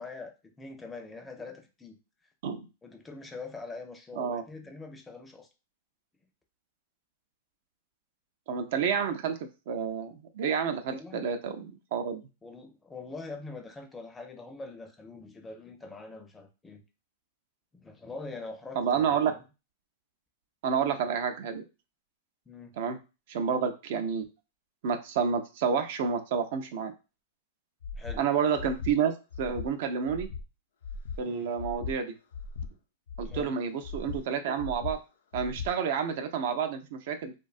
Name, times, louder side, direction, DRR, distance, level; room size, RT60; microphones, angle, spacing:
voice 1, 0.0-2.0 2.8-5.5 10.9-11.3 12.4-16.8 17.7-19.4 22.5-22.8 28.0-28.3 31.3-31.5 33.2-33.5, left 3 dB, 10° left, 4 dB, 0.5 m, -43 dB
voice 2, 8.5-9.4 9.7-12.2 18.8-19.3 20.6-21.6 22.8-23.0 23.3-24.3 24.8-26.9 28.2-30.3 31.2-32.1 33.2-35.0 35.3-37.3, right 7 dB, 60° right, 8 dB, 0.4 m, -29 dB
Breathing, 27.8-28.2 28.6-28.9 29.3-29.7 30.1-30.4 30.8-31.2 31.6-31.9 32.3-32.7 33.1-33.4 33.8-34.2 34.6-34.9 35.3-35.7, left 5 dB, 85° left, 0.5 m, -38 dB
2.6 x 2.2 x 2.4 m, 0.30 s
hypercardioid pair, 135°, 0 cm